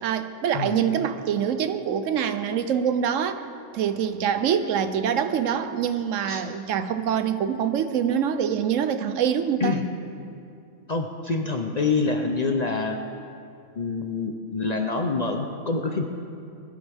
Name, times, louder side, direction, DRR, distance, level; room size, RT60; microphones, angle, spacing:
voice 1, 0.0-3.4 3.7-9.7, right 8 dB, 75° right, 10 dB, 1.0 m, -25 dB
voice 2, 0.5-0.9 6.3-6.4 9.6-9.8 10.9-13.0 13.8-16.0, left 4 dB, 45° left, 3 dB, 0.6 m, -26 dB
20.5 x 11.5 x 3.5 m, 2.5 s
omnidirectional pair, 1.3 m